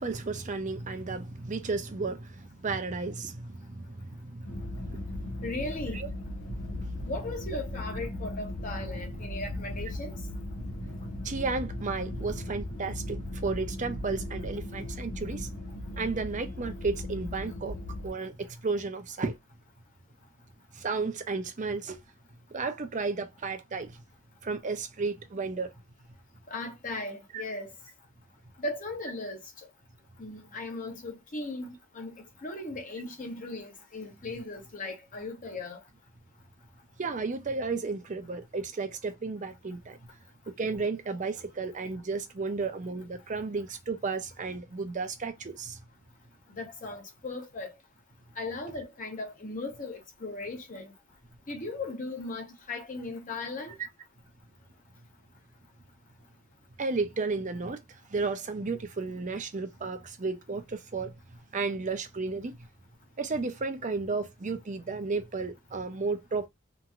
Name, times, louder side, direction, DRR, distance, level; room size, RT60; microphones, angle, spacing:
voice 1, 0.0-5.5 5.9-6.1 6.5-7.1 8.8-9.3 10.6-15.5 16.0-17.8 18.0-19.3 20.7-22.0 22.5-24.0 24.4-25.7 27.3-27.4 37.0-40.0 40.5-45.8 56.8-61.2 61.5-62.6 63.2-66.5, right 4 dB, 40° right, 0.6 m, -33 dB
sound 1, 4.5-18.1, left 1 dB, 80° left, 0.7 m, -38 dB
voice 2, 5.4-6.0 7.1-10.2 26.5-27.7 28.6-29.4 30.2-32.1 32.4-35.8 46.5-47.7 48.4-50.9 51.5-53.8, left 2 dB, 40° left, 1.0 m, -37 dB
2.9 x 2.6 x 2.5 m
head